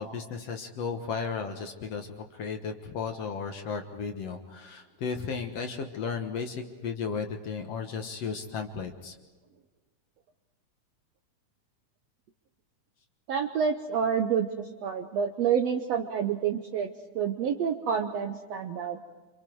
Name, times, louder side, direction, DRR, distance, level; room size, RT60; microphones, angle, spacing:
voice 1, 0.0-9.1, left 5 dB, 60° left, 5 dB, 2.0 m, -34 dB
voice 2, 13.3-14.5 14.8-16.9 17.1-19.0, right 7 dB, 70° right, 6 dB, 1.6 m, -28 dB
27.5 x 26.0 x 4.6 m, 1.3 s
omnidirectional pair, 3.8 m